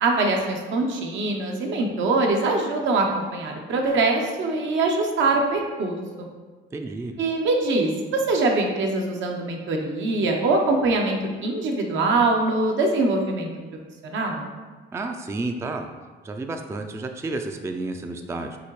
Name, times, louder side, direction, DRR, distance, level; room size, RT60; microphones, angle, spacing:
voice 1, 0.0-6.3 7.2-13.5 14.0-14.5, right 3 dB, 70° right, 1 dB, 0.8 m, -23 dB
voice 2, 6.7-7.1 14.9-15.9 16.2-18.6, right 2 dB, 15° right, 5 dB, 0.3 m, -31 dB
6.2 x 2.8 x 3.1 m, 1.4 s
cardioid pair, 90°, 20 cm